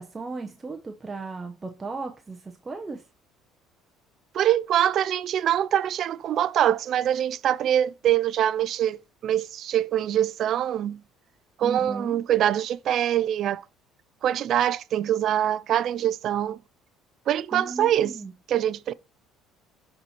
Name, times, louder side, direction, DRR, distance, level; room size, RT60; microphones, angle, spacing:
voice 1, 0.0-3.0 11.6-12.2 17.5-18.3, right 3 dB, 25° right, 0.8 m, -36 dB
voice 2, 4.3-11.0 11.6-13.6 14.2-16.6 17.3-18.2 18.5-18.9, right 11 dB, 60° right, 0.3 m, -24 dB
12.0 x 4.3 x 2.9 m
supercardioid pair, 80°, 0 cm